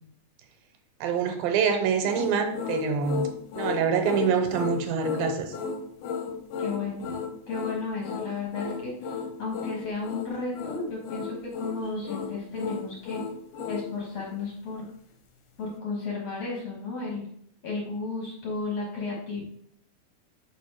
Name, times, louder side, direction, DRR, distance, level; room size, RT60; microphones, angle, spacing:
voice 1, 1.0-3.3 3.5-5.5, right 6 dB, 85° right, 5 dB, 2.5 m, -25 dB
sound 1, 2.0-13.9, left 6 dB, 75° left, 2.1 m, -34 dB
voice 2, 6.6-7.1 7.5-13.2 13.7-14.9 15.6-17.2 17.6-19.4, left 3 dB, 55° left, -3 dB, 1.9 m, -33 dB
5.2 x 5.1 x 4.6 m, 0.67 s
omnidirectional pair, 4.2 m